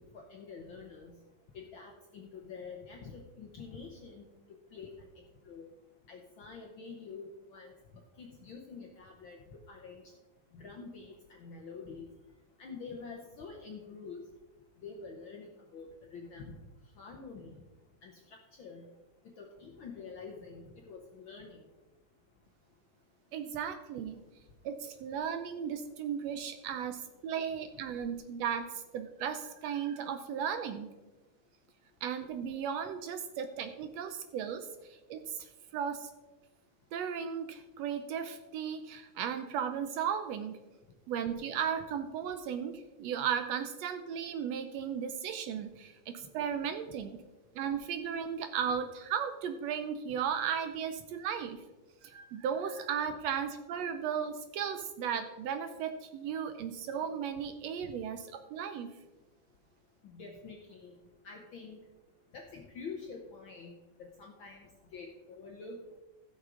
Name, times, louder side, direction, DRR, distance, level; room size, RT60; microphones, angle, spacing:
voice 1, 0.1-1.2 1.5-4.3 4.7-4.9 5.5-5.7 6.1-7.7 8.2-10.0 10.5-12.1 12.6-14.2 14.8-15.9 16.1-16.6 17.0-17.6 18.0-18.9 19.2-21.6 60.1-60.9 61.2-61.8 62.3-63.7 64.0-65.8, left 4 dB, 65° left, 1 dB, 1.2 m, -47 dB
voice 2, 23.3-24.2 24.6-28.6 28.9-30.9 32.0-36.1 36.9-40.6 41.1-47.2 47.5-51.6 52.0-58.2 58.5-58.9, right 8 dB, 75° right, 8 dB, 1.7 m, -35 dB
16.0 x 6.3 x 3.8 m, 1.1 s
omnidirectional pair, 3.3 m